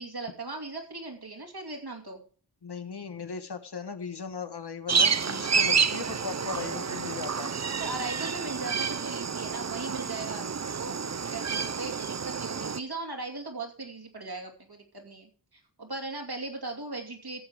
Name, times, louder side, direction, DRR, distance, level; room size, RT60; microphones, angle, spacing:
voice 1, 0.0-2.2 7.8-10.5 10.8-17.4, right 3 dB, 60° right, 2 dB, 2.8 m, -38 dB
voice 2, 2.6-7.5, left 5 dB, 65° left, 8 dB, 1.3 m, -37 dB
sound 1, 4.9-12.8, right 6 dB, 40° right, 0.6 m, -29 dB
14.5 x 7.5 x 4.8 m, 0.40 s
wide cardioid pair, 60°, 43 cm